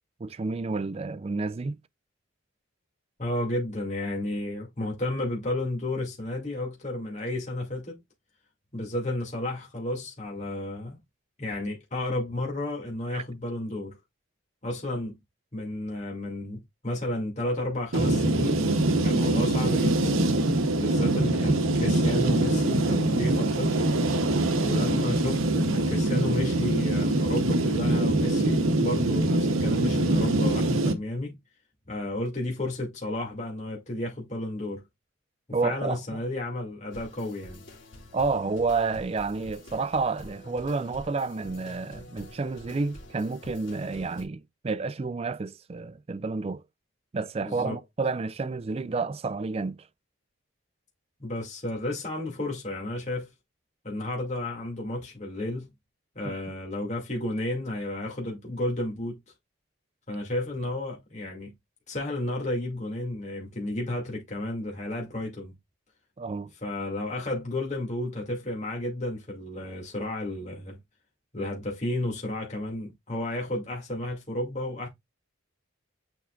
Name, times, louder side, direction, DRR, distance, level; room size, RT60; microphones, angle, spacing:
voice 1, 0.2-1.8 13.1-13.2 35.5-36.0 38.1-46.6 47.1-49.8 56.2-56.3 66.2-66.5, right 4 dB, 30° right, 0.4 m, -30 dB
voice 2, 3.2-8.0 8.7-11.0 11.4-14.0 14.6-15.2 15.5-18.7 19.0-20.3 20.8-24.0 24.6-31.4 31.9-34.8 35.6-37.6 47.4-47.8 51.2-53.3 53.8-55.7 56.1-59.2 60.1-61.5 61.9-65.6 66.6-70.8 71.3-74.9, left 1 dB, 35° left, 2.3 m, -32 dB
sound 1, 17.9-30.9, right 2 dB, 85° right, 0.9 m, -24 dB
sound 2, 36.9-44.2, left 1 dB, 65° left, 2.8 m, -47 dB
7.1 x 5.6 x 2.4 m
head